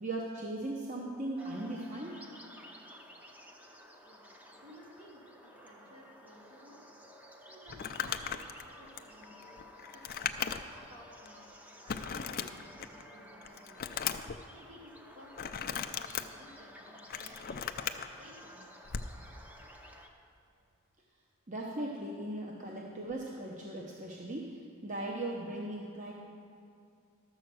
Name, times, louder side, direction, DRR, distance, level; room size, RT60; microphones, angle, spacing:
voice 1, 0.0-2.1 21.5-26.1, right 1 dB, 35° right, -2 dB, 0.9 m, -38 dB
sound 1, 1.4-20.1, equal, 5° right, 0.7 m, -53 dB
voice 2, 4.5-6.8 7.5-10.3 10.9-13.8 14.5-17.6 18.2-18.7, equal, 70° right, -5 dB, 3.2 m, -56 dB
Crumpling crinkling, 7.7-10.9 11.2-11.3 11.9-13.0 13.4-14.4 15.3-16.2 16.9-18.1 18.9-19.1, left 8 dB, 45° left, 0.4 m, -37 dB
12.5 x 7.6 x 6.2 m, 2.4 s
head